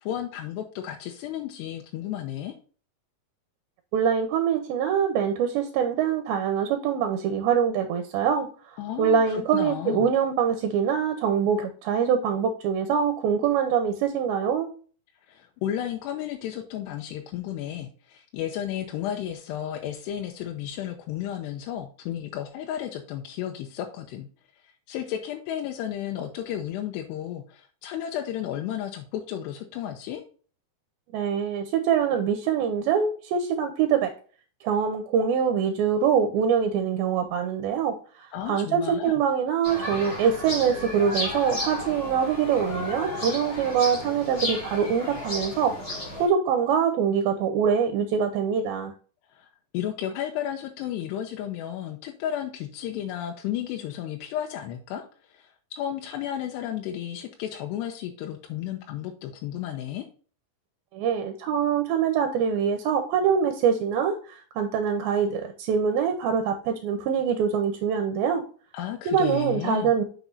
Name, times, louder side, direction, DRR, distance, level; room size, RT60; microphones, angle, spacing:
voice 1, 0.0-2.5 8.8-10.1 15.3-24.3 24.9-30.2 38.3-39.2 49.3-49.5 49.7-60.1 68.7-69.9, left 11 dB, 85° left, 3 dB, 2.9 m, -33 dB
voice 2, 3.9-8.5 9.0-14.7 31.1-34.1 34.6-45.7 46.2-48.9 60.9-68.4 69.1-70.0, right 7 dB, 75° right, 7 dB, 2.3 m, -24 dB
sound 1, 39.6-46.3, left 1 dB, 15° left, 3.6 m, -33 dB
8.2 x 6.0 x 2.6 m, 0.40 s
omnidirectional pair, 4.8 m